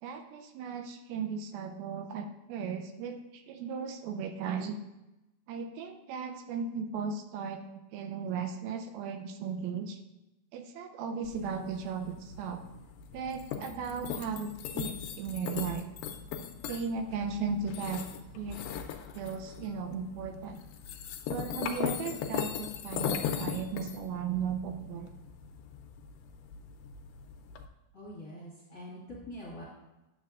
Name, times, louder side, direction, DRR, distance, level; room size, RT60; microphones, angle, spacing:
voice 1, 0.0-4.8 5.5-7.6 7.9-10.0 10.5-12.6 13.1-15.8 16.7-18.0 18.3-18.6 19.1-20.6 21.3-25.1, right 6 dB, 85° right, 7 dB, 2.4 m, -36 dB
sound 1, 11.2-27.7, left 8 dB, 85° left, 2.5 m, -39 dB
voice 2, 27.9-29.6, left 1 dB, 40° left, -6 dB, 1.5 m, -44 dB
10.5 x 7.4 x 2.4 m, 0.98 s
omnidirectional pair, 4.3 m